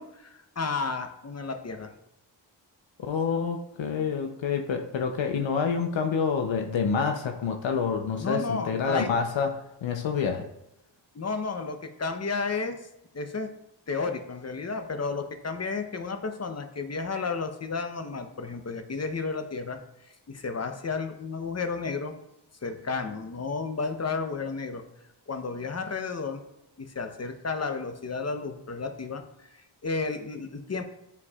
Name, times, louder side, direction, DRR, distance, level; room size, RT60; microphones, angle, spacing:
voice 1, 0.0-1.9 8.2-9.1 11.1-12.8 13.1-13.5 13.9-19.8 20.3-22.1 22.6-24.8 25.3-26.4 26.8-29.5 29.8-30.8, left 4 dB, 35° left, 7 dB, 0.8 m, -32 dB
voice 2, 3.0-10.5, left 6 dB, 75° left, 5 dB, 0.7 m, -28 dB
9.6 x 4.6 x 2.4 m, 0.86 s
cardioid pair, 65°, 45 cm